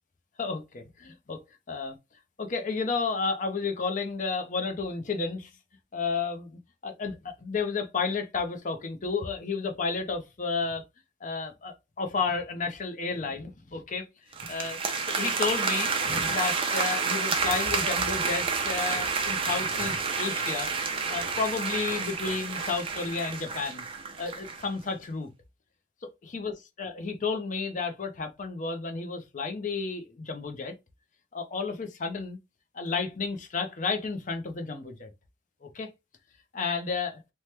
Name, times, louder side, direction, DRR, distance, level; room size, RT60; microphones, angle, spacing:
voice 1, 0.4-1.4 1.7-2.0 2.4-5.5 5.9-10.8 11.2-14.1 14.4-14.8 15.1-20.7 21.1-23.9 24.2-25.3 26.2-30.7 31.3-32.4 32.7-35.1 35.6-35.9 36.5-37.2, left 4 dB, 40° left, 0.5 m, -32 dB
sound 1, 14.3-24.7, right 5 dB, 30° right, 0.5 m, -29 dB
2.9 x 2.1 x 3.2 m
head